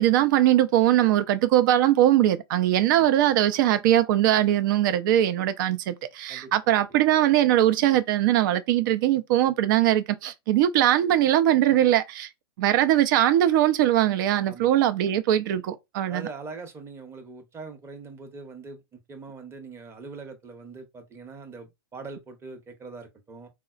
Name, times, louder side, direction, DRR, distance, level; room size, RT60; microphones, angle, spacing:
voice 1, 0.0-12.3 12.6-16.3, right 12 dB, 55° right, 0.5 m, -21 dB
voice 2, 16.1-23.5, right 4 dB, 20° right, 0.8 m, -42 dB
3.9 x 2.1 x 2.4 m
hypercardioid pair, 110°, 13 cm